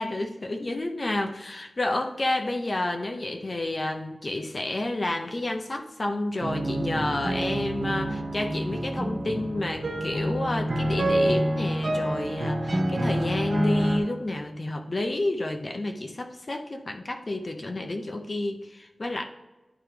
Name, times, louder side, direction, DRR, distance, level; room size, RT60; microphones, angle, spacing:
voice 1, 0.0-19.2, left 2 dB, 45° left, 4 dB, 0.6 m, -30 dB
sound 1, 6.4-14.0, right 1 dB, 80° right, 1.3 m, -27 dB
11.0 x 4.6 x 3.3 m, 1.1 s
wide cardioid pair, 85°, 0 cm